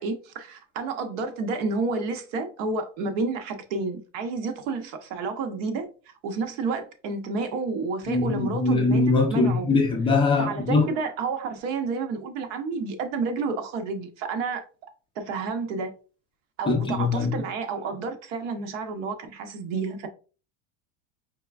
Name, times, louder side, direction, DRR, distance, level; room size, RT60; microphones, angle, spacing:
voice 1, 0.0-5.9 6.2-9.0 9.3-9.7 10.4-14.6 15.2-15.9 16.6-20.1, right 4 dB, 75° right, 0.9 m, -30 dB
voice 2, 8.1-10.8 16.7-17.3, left 3 dB, 15° left, 0.5 m, -22 dB
4.7 x 3.3 x 2.3 m
cardioid pair, 160°, 36 cm